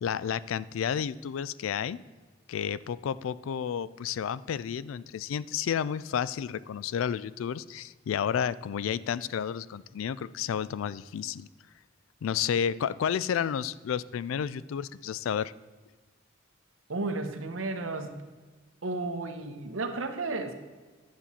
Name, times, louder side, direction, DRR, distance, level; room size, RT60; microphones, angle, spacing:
voice 1, 0.0-2.0 2.5-11.5 12.2-15.5, left 8 dB, 80° left, 18 dB, 0.3 m, -31 dB
voice 2, 16.9-18.2 18.8-20.5, right 3 dB, 80° right, 7 dB, 1.0 m, -33 dB
10.5 x 7.4 x 4.2 m, 1.4 s
head